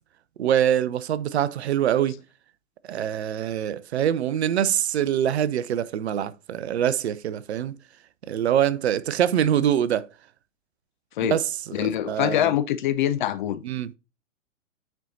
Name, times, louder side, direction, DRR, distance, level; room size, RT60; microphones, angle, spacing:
voice 1, 0.4-2.2 2.9-7.8 8.3-10.1 11.2-11.5 11.8-12.4 13.6-13.9, right 10 dB, 55° right, 0.6 m, -24 dB
voice 2, 11.7-13.6, left 11 dB, 40° left, 0.6 m, -24 dB
9.1 x 4.5 x 2.7 m
figure-of-eight pair, 115°, 39 cm